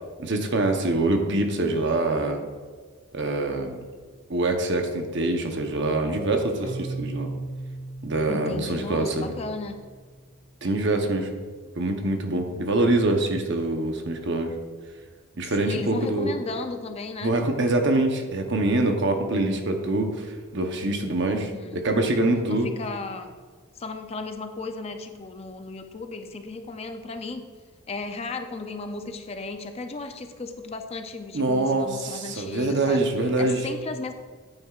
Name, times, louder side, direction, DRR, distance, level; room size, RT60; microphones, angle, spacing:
voice 1, 0.2-2.4 3.1-3.8 4.3-7.3 8.0-9.3 10.6-11.4 11.8-14.5 15.4-16.3 17.2-22.7 31.3-33.6, right 2 dB, 55° right, 4 dB, 0.9 m, -24 dB
Keyboard (musical), 6.6-10.3, right 2 dB, 30° right, 1.8 m, -37 dB
voice 2, 8.3-9.8 15.4-17.3 21.4-21.8 22.5-23.3 23.7-27.5 27.9-34.1, left 3 dB, 25° left, 6 dB, 0.4 m, -35 dB
9.4 x 8.9 x 2.4 m, 1.5 s
head